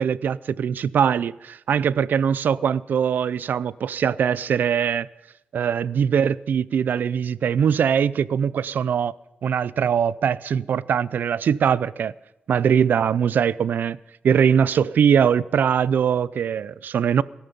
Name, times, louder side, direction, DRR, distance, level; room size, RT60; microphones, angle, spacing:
voice 1, 0.0-5.1 5.5-9.1 9.4-12.1 12.5-14.0 14.2-17.2, right 7 dB, 75° right, 0.5 m, -21 dB
17.5 x 13.5 x 5.3 m
cardioid pair, 70°, 3 cm